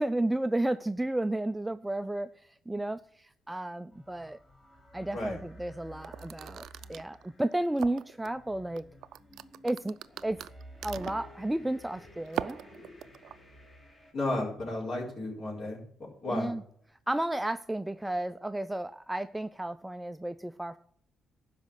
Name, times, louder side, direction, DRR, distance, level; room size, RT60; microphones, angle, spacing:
voice 1, 0.0-2.3 2.7-4.4 4.9-8.8 9.6-10.0 10.2-10.4 10.8-12.6 16.3-16.6 17.1-20.8, right 1 dB, 10° right, 11 dB, 0.4 m, -32 dB
sound 1, 3.9-14.1, equal, 30° left, 3.3 m, -52 dB
sound 2, 6.0-8.3 8.8-11.3 12.3-13.4, right 11 dB, 75° right, 0.4 m, -40 dB
voice 2, 14.1-15.8 16.2-16.5, left 2 dB, 50° left, -5 dB, 4.5 m, -33 dB
12.5 x 5.0 x 8.0 m, 0.65 s
cardioid pair, 90°, 0 cm